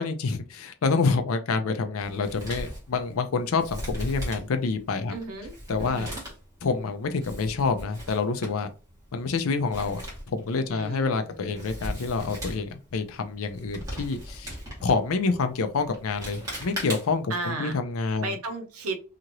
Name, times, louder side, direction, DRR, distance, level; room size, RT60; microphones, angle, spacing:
voice 1, 0.0-5.1 5.7-6.1 6.6-8.7 9.1-10.0 10.3-14.6 14.8-18.4, left 4 dB, 75° left, 0.5 m, -27 dB
Male speech man speaking, 2.0-17.3, equal, 15° right, 1.2 m, -39 dB
voice 2, 5.1-6.2 10.7-11.7 17.3-17.8 18.2-19.0, right 2 dB, 85° right, 0.7 m, -35 dB
2.8 x 2.5 x 2.9 m
head